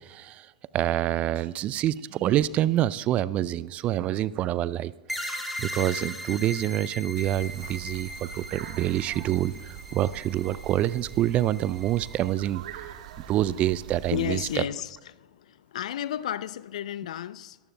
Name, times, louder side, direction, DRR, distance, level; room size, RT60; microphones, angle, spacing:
voice 1, 0.1-0.5 0.7-12.6 13.3-14.4, right 13 dB, 35° right, 0.4 m, -27 dB
sound 1, 5.1-12.3, equal, ahead, 2.8 m, -39 dB
sound 2, 7.1-14.6, right 9 dB, 60° right, 0.8 m, -43 dB
voice 2, 14.1-17.6, left 11 dB, 65° left, 0.4 m, -33 dB
22.0 x 14.5 x 2.2 m
figure-of-eight pair, 95°, 4 cm